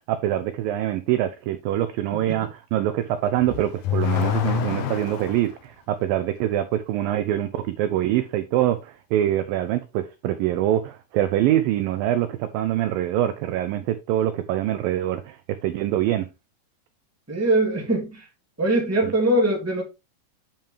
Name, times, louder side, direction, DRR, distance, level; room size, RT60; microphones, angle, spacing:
voice 1, 0.1-16.3 19.0-19.1, right 12 dB, 80° right, 2.0 m, -24 dB
Car / Accelerating revving vroom, 3.3-5.5, left 10 dB, 70° left, 2.0 m, -26 dB
voice 2, 17.3-18.2 18.6-19.8, right 1 dB, 5° right, 1.8 m, -22 dB
9.0 x 5.6 x 3.3 m
omnidirectional pair, 4.7 m